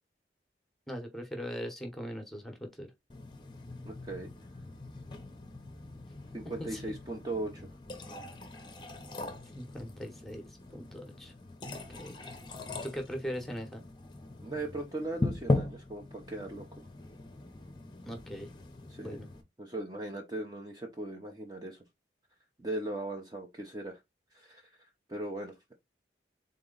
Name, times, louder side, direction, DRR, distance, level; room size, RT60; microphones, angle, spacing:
voice 1, 0.9-2.9 6.4-6.8 9.5-11.3 11.6-12.2 12.8-13.8 18.1-18.5 19.0-19.3, equal, ahead, 0.9 m, -40 dB
sound 1, 3.1-19.4, left 2 dB, 25° left, 0.7 m, -39 dB
voice 2, 3.8-4.3 6.3-7.7 14.4-16.7 18.9-19.2 19.6-21.8 22.6-24.0 24.3-24.7 25.1-25.8, right 2 dB, 20° right, 0.6 m, -38 dB
3.8 x 3.0 x 3.8 m
head